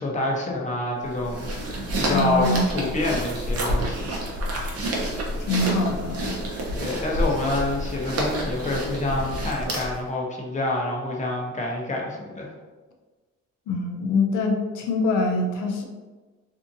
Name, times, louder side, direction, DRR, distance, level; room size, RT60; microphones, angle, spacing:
voice 1, 0.0-4.1 6.8-12.5, left 2 dB, 25° left, -2 dB, 0.7 m, -27 dB
sound 1, 1.0-10.1, equal, 55° right, 0.8 m, -29 dB
voice 2, 2.1-2.7 5.4-6.4 13.7-15.8, left 2 dB, 85° left, 2 dB, 0.6 m, -24 dB
2.7 x 2.5 x 2.6 m, 1.3 s
cardioid pair, 90°, 30 cm